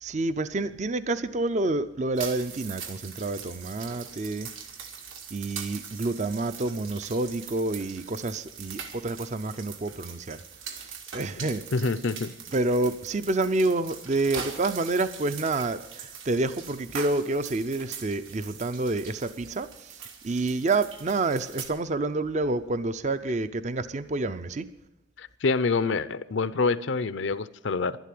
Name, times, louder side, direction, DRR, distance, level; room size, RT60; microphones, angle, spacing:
voice 1, 0.0-4.5 5.3-11.6 12.5-24.7, right 2 dB, 35° right, 13 dB, 0.5 m, -28 dB
sound 1, 2.2-21.7, right 6 dB, 80° right, 2.1 m, -42 dB
voice 2, 11.7-12.3 25.2-28.0, left 4 dB, 65° left, 15 dB, 0.6 m, -26 dB
12.0 x 11.5 x 7.6 m, 1.0 s
head